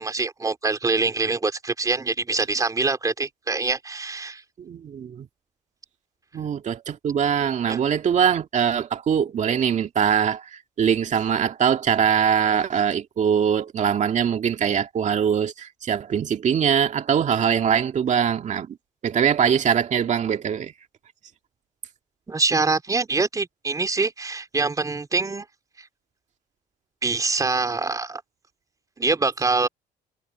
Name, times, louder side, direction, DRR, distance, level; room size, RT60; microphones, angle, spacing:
voice 1, 0.0-4.4 7.7-7.8 22.3-25.5 25.8-25.9 27.0-28.2 29.0-29.7, right 3 dB, 20° right, 3.6 m, -24 dB
voice 2, 4.6-5.3 6.3-18.8 19.0-20.7, right 8 dB, 45° right, 2.3 m, -22 dB
cardioid pair, 110°, 17 cm